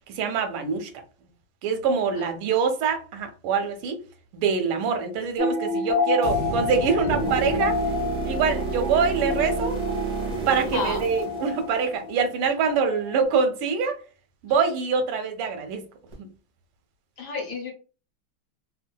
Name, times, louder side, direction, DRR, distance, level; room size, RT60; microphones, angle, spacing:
voice 1, 0.1-0.9 1.6-4.0 4.3-7.8 8.2-9.8 10.5-14.0 14.4-15.8 16.2-16.3, right 5 dB, 90° right, 1.5 m, -25 dB
sound 1, 5.4-13.2, left 4 dB, 45° left, 0.9 m, -29 dB
sound 2, 6.2-9.6, right 2 dB, 65° right, 0.9 m, -35 dB
sound 3, 7.1-12.1 16.1-16.2, right 5 dB, 45° right, 0.5 m, -30 dB
voice 2, 10.7-11.0 17.2-17.7, left 3 dB, 65° left, 1.1 m, -30 dB
3.5 x 2.2 x 2.2 m
omnidirectional pair, 2.3 m